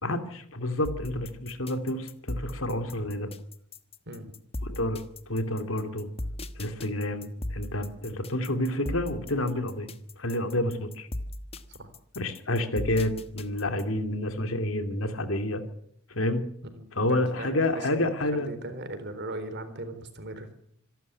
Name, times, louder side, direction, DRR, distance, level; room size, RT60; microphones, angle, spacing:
voice 1, 0.0-3.3 4.7-5.0 5.3-6.1 6.6-9.9 10.2-11.1 12.2-15.6 16.1-16.4 17.0-18.5, left 1 dB, 70° left, 8 dB, 2.6 m, -29 dB
sound 1, 0.8-14.0, left 1 dB, 30° left, 1.3 m, -38 dB
voice 2, 16.8-20.5, right 2 dB, 50° right, 10 dB, 3.8 m, -39 dB
26.0 x 12.5 x 8.5 m, 0.68 s
head